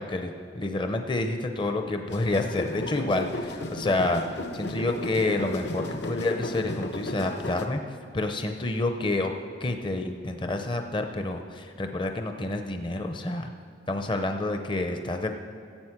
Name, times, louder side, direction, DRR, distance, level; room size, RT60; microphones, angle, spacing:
voice 1, 0.0-7.8 8.1-9.3 9.6-13.5 13.9-15.3, left 2 dB, 25° left, 5 dB, 0.6 m, -28 dB
sound 1, 2.1-7.7, left 2 dB, 60° left, 0.9 m, -34 dB
14.0 x 8.4 x 5.9 m, 2.4 s
head